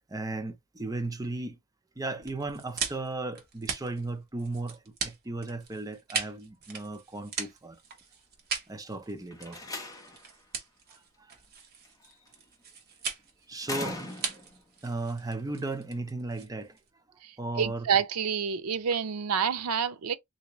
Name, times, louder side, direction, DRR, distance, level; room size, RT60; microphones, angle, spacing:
voice 1, 0.0-1.6 2.0-7.8 8.7-9.6 11.2-11.3 13.5-14.0 14.3-14.4 14.8-16.8 17.4-17.9, right 2 dB, 15° right, 0.5 m, -35 dB
sound 1, 2.2-16.9, right 6 dB, 45° right, 1.1 m, -39 dB
Slam, 9.3-10.3 11.8-12.3 13.6-14.6, left 2 dB, 15° left, 0.8 m, -39 dB
voice 2, 17.6-20.2, right 7 dB, 85° right, 0.5 m, -28 dB
3.4 x 2.7 x 3.0 m
head